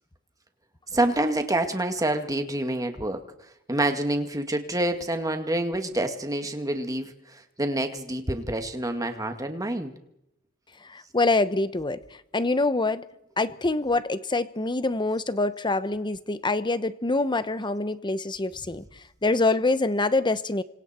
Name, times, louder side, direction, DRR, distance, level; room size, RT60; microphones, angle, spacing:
voice 1, 0.9-3.2 3.7-9.9, right 1 dB, 15° right, 6 dB, 2.2 m, -27 dB
voice 2, 10.8-12.0 12.3-13.0 13.4-18.8 19.2-20.6, left 2 dB, 20° left, 13 dB, 1.0 m, -25 dB
29.5 x 26.0 x 4.5 m, 0.81 s
head